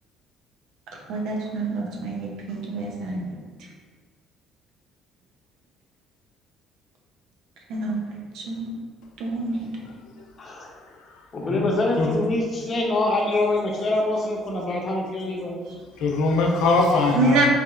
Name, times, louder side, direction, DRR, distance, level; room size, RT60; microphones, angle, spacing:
voice 1, 1.1-3.4 7.7-8.8 9.2-9.9 15.6-15.7 17.1-17.5, right 2 dB, 75° right, 0 dB, 0.6 m, -27 dB
voice 2, 10.4-10.7 11.3-15.6, left 2 dB, 40° left, -1 dB, 0.7 m, -25 dB
voice 3, 12.0-12.3 16.0-17.5, left 3 dB, 80° left, 1 dB, 0.5 m, -21 dB
3.4 x 2.8 x 2.4 m, 1.4 s
cardioid pair, 90°, 0 cm